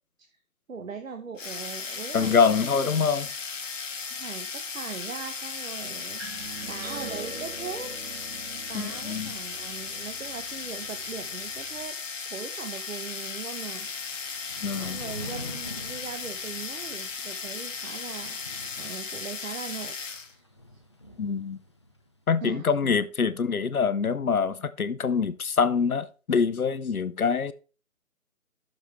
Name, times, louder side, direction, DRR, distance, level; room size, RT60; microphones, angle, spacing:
voice 1, 0.7-2.9 4.1-6.2 6.7-7.9 8.3-12.0 12.2-13.9 14.8-18.4 18.8-20.0 20.3-20.5 22.4-23.0, right 5 dB, 70° right, 1.2 m, -40 dB
sound 1, 1.4-20.3, left 5 dB, 60° left, 1.3 m, -36 dB
voice 2, 2.1-3.3 8.7-9.3 14.6-15.0 21.2-21.6 22.3-27.5, left 5 dB, 80° left, 0.9 m, -25 dB
sound 2, 6.2-11.9, right 4 dB, 45° right, 2.2 m, -44 dB
Thunder / Rain, 13.7-22.1, left 2 dB, 20° left, 0.6 m, -46 dB
12.5 x 6.7 x 3.2 m
figure-of-eight pair, 150°, 42 cm